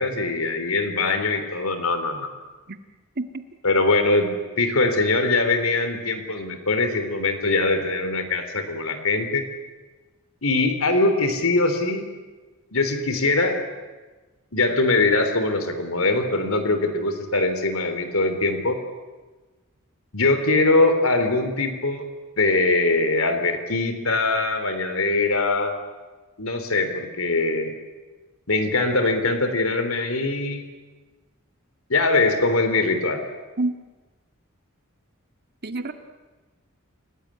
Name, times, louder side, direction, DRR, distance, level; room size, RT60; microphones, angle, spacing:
voice 1, 0.0-2.3 3.6-9.4 10.4-12.1 12.7-13.6 14.5-18.8 20.1-22.0 22.4-25.7 26.4-27.7 28.5-30.6 31.9-33.2, left 3 dB, 75° left, 8 dB, 3.6 m, -22 dB
voice 2, 35.6-35.9, right 2 dB, 50° right, 7 dB, 1.9 m, -26 dB
29.0 x 18.5 x 10.0 m, 1.3 s
head